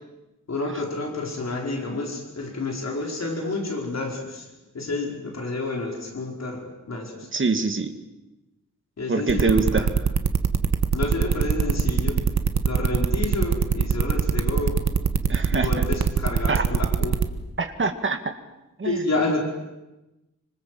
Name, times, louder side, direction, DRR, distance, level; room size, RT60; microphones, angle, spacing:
voice 1, 0.5-4.5 4.7-7.3 9.0-9.9 10.9-12.2 12.6-14.8 15.5-17.2 18.8-19.4, left 2 dB, 60° left, 1 dB, 5.2 m, -29 dB
voice 2, 7.3-7.9 9.1-9.8 15.3-15.7 16.5-16.6 17.6-18.3 18.8-19.0, right 4 dB, 40° right, 7 dB, 2.2 m, -24 dB
sound 1, 9.3-17.2, right 6 dB, 65° right, 1.4 m, -21 dB
26.5 x 25.5 x 7.8 m, 0.99 s
wide cardioid pair, 175°, 31 cm